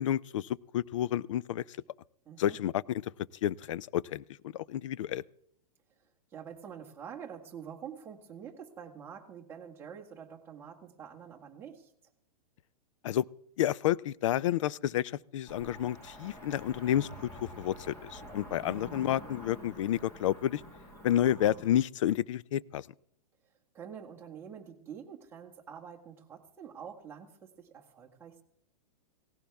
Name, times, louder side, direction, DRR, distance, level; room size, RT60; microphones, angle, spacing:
voice 1, 0.0-1.6 2.4-3.1 3.4-5.2 13.0-13.3 13.6-20.6 21.0-22.9, left 11 dB, 55° left, 22 dB, 0.5 m, -30 dB
voice 2, 2.2-2.6 6.3-11.9 18.5-18.9 23.7-28.4, right 7 dB, 10° right, -1 dB, 1.6 m, -47 dB
Cricket / Motor vehicle (road), 15.5-21.7, equal, 15° left, 2.2 m, -48 dB
17.5 x 15.5 x 3.5 m, 0.70 s
hypercardioid pair, 160°, 20 cm